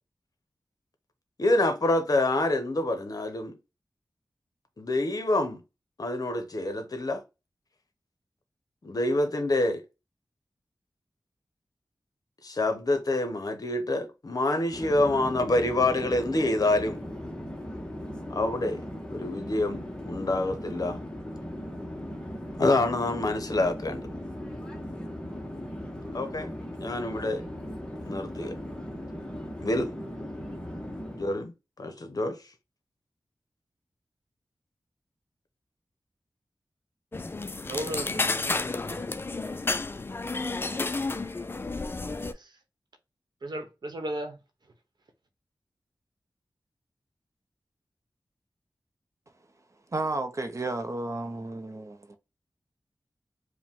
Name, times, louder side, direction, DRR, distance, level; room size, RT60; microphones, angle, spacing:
voice 1, 1.4-3.5 4.8-5.6 6.0-7.2 8.8-9.8 12.4-17.0 18.3-18.8 19.1-21.0 22.6-24.0 26.1-26.5 26.8-27.4 28.0-28.5 29.6-29.9 31.2-31.5 31.8-32.4, left 2 dB, 50° left, 0.8 m, -26 dB
Conversation / Chatter / Fixed-wing aircraft airplane, 14.7-31.4, equal, 10° left, 0.8 m, -38 dB
sound 1, 37.1-42.3, left 3 dB, 30° left, 0.3 m, -31 dB
voice 2, 37.7-38.3 38.8-39.1 42.2-42.6 43.4-44.4, right 1 dB, 65° right, 0.9 m, -35 dB
voice 3, 49.9-52.2, right 2 dB, 40° right, 0.6 m, -32 dB
4.9 x 2.1 x 3.5 m
wide cardioid pair, 100°, 8 cm